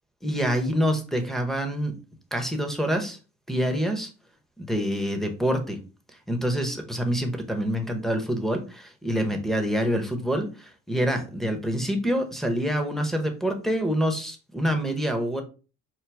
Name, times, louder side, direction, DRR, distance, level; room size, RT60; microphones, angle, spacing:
voice 1, 0.2-1.9 2.3-3.2 3.5-4.1 4.6-5.8 6.3-15.4, equal, ahead, 3 dB, 0.8 m, -26 dB
4.6 x 2.2 x 3.4 m, 0.34 s
cardioid pair, 90°, 30 cm